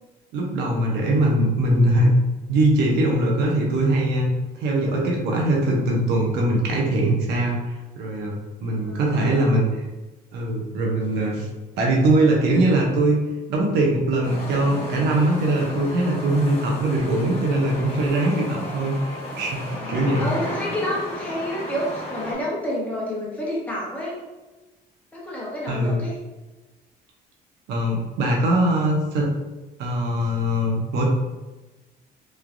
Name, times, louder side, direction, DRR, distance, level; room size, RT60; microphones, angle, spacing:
voice 1, 0.3-2.1 2.5-4.3 4.6-9.8 10.3-11.5 11.8-13.2 13.5-20.3 25.7-26.0 27.7-29.3 29.8-31.0, right 1 dB, 85° right, -1 dB, 0.6 m, -21 dB
voice 2, 8.7-9.4 19.7-24.2 25.1-26.2, left 1 dB, 10° left, -5 dB, 0.9 m, -29 dB
sound 1, 14.2-22.3, left 1 dB, 35° left, 1.3 m, -34 dB
3.1 x 2.2 x 2.4 m, 1.1 s
cardioid pair, 110°, 17 cm